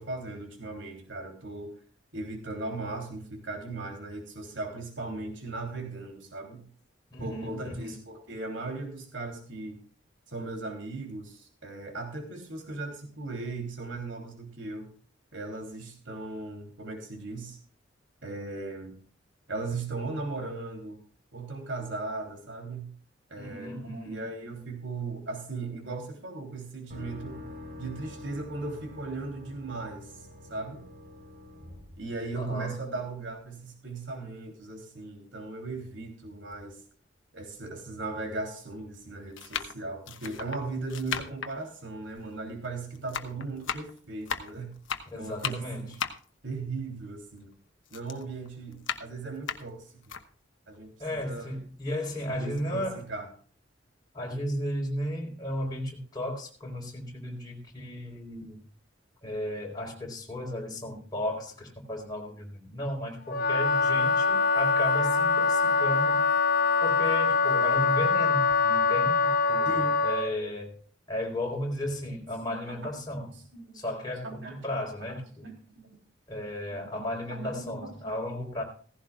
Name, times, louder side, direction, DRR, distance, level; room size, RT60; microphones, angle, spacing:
voice 1, 0.0-1.7 2.1-6.7 7.2-9.8 10.3-14.9 15.3-17.6 18.2-19.0 19.5-21.0 21.3-22.9 23.3-27.5 27.8-30.8 32.0-36.8 37.3-44.7 45.2-45.9 46.4-47.5 47.9-49.9 50.7-51.5 52.3-53.3 69.6-70.0 72.4-72.9 73.5-73.8 74.2-74.8 75.4-76.0 76.7-78.0, right 3 dB, 90° right, 3 dB, 3.3 m, -38 dB
voice 2, 7.1-7.9 23.4-24.3 32.3-32.8 45.1-46.0 51.0-53.0 54.1-58.6 59.2-66.3 66.8-69.2 69.5-70.7 71.1-73.4 73.7-75.5 76.3-78.6, left 1 dB, 20° left, -1 dB, 4.1 m, -34 dB
sound 1, 26.9-32.8, left 2 dB, 55° right, 6.0 m, -46 dB
sound 2, 36.5-36.6 37.5-37.6 38.6-38.8 39.3-42.7 42.9-47.5 47.9-50.2 50.7-50.8 51.1-52.1 52.4-52.6, left 7 dB, 90° left, 1.1 m, -37 dB
Wind instrument woodwind instrument, 63.3-70.3, left 4 dB, 50° left, 0.5 m, -24 dB
16.5 x 15.5 x 2.4 m, 0.44 s
head